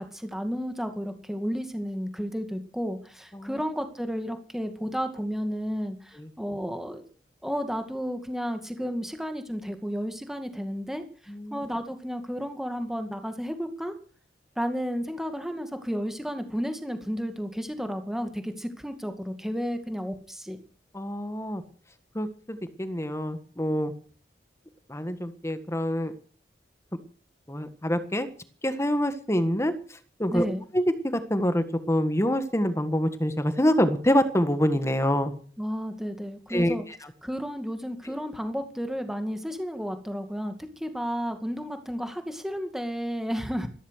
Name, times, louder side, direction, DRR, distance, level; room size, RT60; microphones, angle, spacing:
voice 1, 0.0-7.0 7.4-13.9 14.6-20.6 30.3-30.6 35.6-36.8 37.2-43.7, equal, ahead, 7 dB, 2.2 m, -32 dB
voice 2, 11.3-11.7 20.9-21.6 22.1-23.9 24.9-26.1 27.5-28.3 28.6-29.7 30.2-30.5 30.7-30.8 31.1-35.3 36.5-36.7, equal, 15° left, 10 dB, 1.6 m, -26 dB
15.0 x 14.0 x 6.4 m, 0.43 s
head